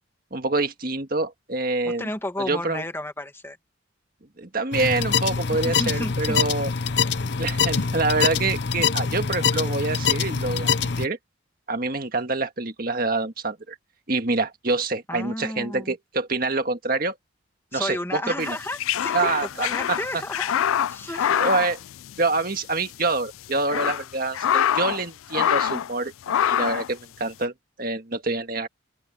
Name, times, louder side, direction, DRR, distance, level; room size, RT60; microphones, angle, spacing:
voice 1, 0.3-2.1 2.4-2.8 4.4-6.7 7.4-11.2 11.7-13.7 14.1-17.2 17.7-18.6 19.1-20.0 21.4-21.8 22.2-26.1 26.5-27.5 27.8-28.7, right 3 dB, 45° right, 1.8 m, -26 dB
voice 2, 1.8-3.6 5.5-6.4 15.1-15.9 17.7-19.3 19.6-20.6 20.9-21.5, left 1 dB, 10° left, 2.2 m, -32 dB
sound 1, 4.7-11.1, left 6 dB, 55° left, 0.7 m, -24 dB
sound 2, 18.5-22.6 22.8-22.9 23.5-25.0 25.3-25.9 26.3-26.9, left 9 dB, 85° left, 0.4 m, -25 dB
open air
head